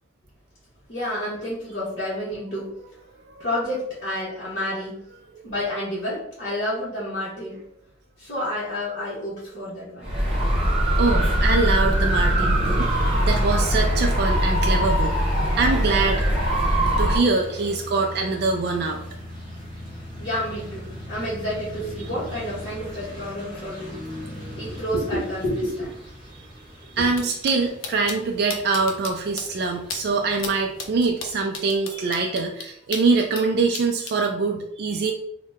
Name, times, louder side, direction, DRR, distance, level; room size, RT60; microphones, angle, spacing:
voice 1, 0.9-2.7 3.4-5.0 5.4-7.6 8.2-10.1 20.2-24.0 24.6-25.9 27.0-27.1, left 1 dB, 55° left, -11 dB, 1.0 m, -29 dB
sound 1, 10.0-17.2, equal, 30° right, 0.8 m, -21 dB
voice 2, 11.0-15.2 15.5-16.3 17.0-19.0 24.2-24.8 26.8-35.1, right 4 dB, 55° right, 2 dB, 0.3 m, -24 dB
sound 2, 12.8-31.4, left 1 dB, 25° left, 0.8 m, -40 dB
sound 3, 27.1-27.2 27.5-27.6 27.8-28.2 28.5-29.1 29.4-29.5 29.9-30.0 30.4-30.5 30.8-33.4 33.7-34.1, left 5 dB, 80° left, 0.5 m, -33 dB
2.8 x 2.1 x 3.5 m, 0.71 s
head